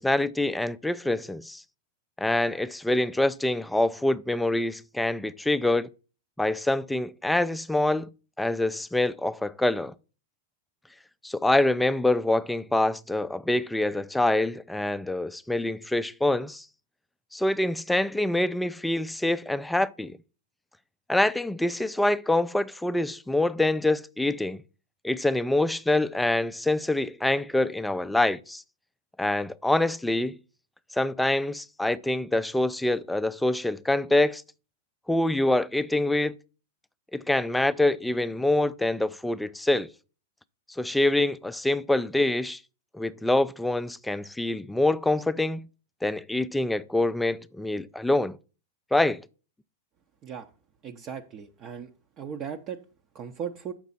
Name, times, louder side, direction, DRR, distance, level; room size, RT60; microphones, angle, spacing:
voice 1, 0.0-1.6 2.2-5.9 6.4-8.1 8.4-9.9 11.2-16.7 17.3-20.2 21.1-24.6 25.0-28.6 29.2-30.4 30.9-34.4 35.1-36.3 37.1-39.9 40.8-42.6 42.9-45.7 46.0-48.4 48.9-49.2, left 1 dB, 5° left, 0.4 m, -25 dB
voice 2, 50.8-51.9 52.2-52.8 53.1-53.7, right 7 dB, 35° right, 0.6 m, -37 dB
7.2 x 5.9 x 4.0 m
hypercardioid pair, 115°, 0 cm